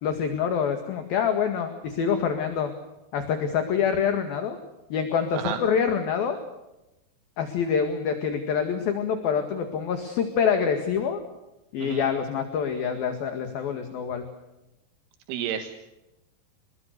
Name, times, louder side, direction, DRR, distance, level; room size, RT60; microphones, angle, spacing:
voice 1, 0.0-2.7 3.1-4.6 4.9-6.4 7.4-11.2 11.7-14.3, left 7 dB, 60° left, 6 dB, 3.4 m, -26 dB
voice 2, 15.3-15.8, right 9 dB, 85° right, 6 dB, 4.0 m, -31 dB
27.5 x 21.5 x 6.7 m, 0.97 s
omnidirectional pair, 5.4 m